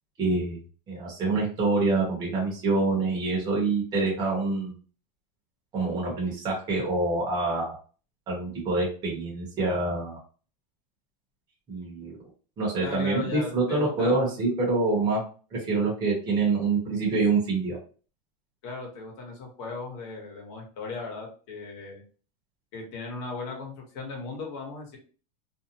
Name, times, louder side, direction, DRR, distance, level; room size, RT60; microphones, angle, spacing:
voice 1, 0.2-0.6 0.9-4.7 5.7-7.7 8.3-10.2 11.7-12.2 12.6-15.2 15.5-17.8, right 3 dB, 20° right, -4 dB, 0.9 m, -26 dB
voice 2, 12.8-14.5 18.6-22.0 22.7-25.0, left 3 dB, 50° left, 0 dB, 1.1 m, -37 dB
2.6 x 2.1 x 2.8 m, 0.38 s
supercardioid pair, 170°, 21 cm